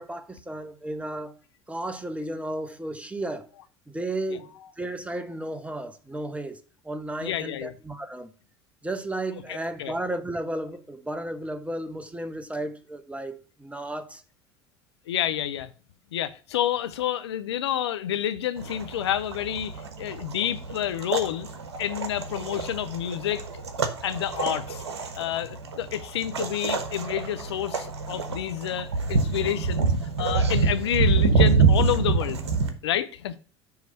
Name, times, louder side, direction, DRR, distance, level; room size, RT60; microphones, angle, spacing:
voice 1, 0.0-1.4 1.7-3.5 3.9-8.3 8.8-14.2, right 1 dB, 10° right, 1.0 m, -33 dB
voice 2, 7.2-7.7 9.8-9.9 15.1-15.7 16.1-21.5 21.8-23.4 24.0-24.8 25.2-29.9 30.2-32.4 32.8-33.3, left 11 dB, 80° left, 0.6 m, -29 dB
sound 1, 18.6-32.7, right 4 dB, 85° right, 1.0 m, -26 dB
9.4 x 3.2 x 6.5 m
hypercardioid pair, 70°, 14 cm